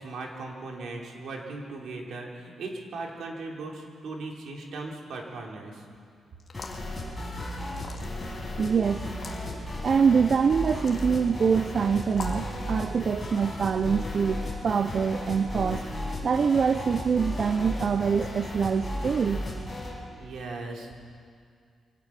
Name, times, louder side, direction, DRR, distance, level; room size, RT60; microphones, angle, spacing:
voice 1, 0.0-5.8 20.2-21.2, right 3 dB, 70° right, 0 dB, 3.1 m, -38 dB
sound 1, 6.4-6.9 7.7-8.3 9.1-9.4 10.6-11.1 12.1-12.5, left 4 dB, 35° left, 1.8 m, -41 dB
sound 2, 6.5-20.0, left 1 dB, 10° left, 5.1 m, -35 dB
voice 2, 8.6-9.0 9.5-15.9 16.2-19.4, right 6 dB, 40° right, 10 dB, 0.4 m, -25 dB
24.5 x 18.0 x 5.9 m, 2.2 s
wide cardioid pair, 165°, 0 cm